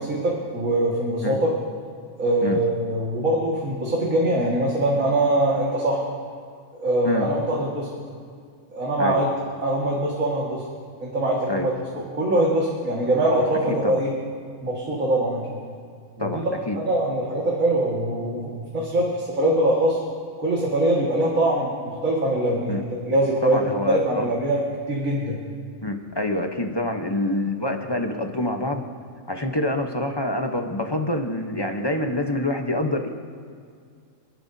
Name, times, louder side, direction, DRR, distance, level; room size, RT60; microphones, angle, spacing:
voice 1, 0.1-1.5 2.2-6.0 6.7-7.9 8.7-9.3 9.6-10.6 11.0-14.1 14.6-15.6 16.2-16.4 16.8-20.0 20.4-22.8 23.1-23.6 23.9-24.6 24.9-25.4, right 1 dB, 80° right, -4 dB, 2.3 m, -23 dB
voice 2, 16.2-16.8 22.7-22.8 23.4-24.3 25.8-28.8 29.3-33.1, left 1 dB, 20° left, 4 dB, 0.8 m, -26 dB
28.5 x 11.0 x 2.7 m, 2.2 s
omnidirectional pair, 1.4 m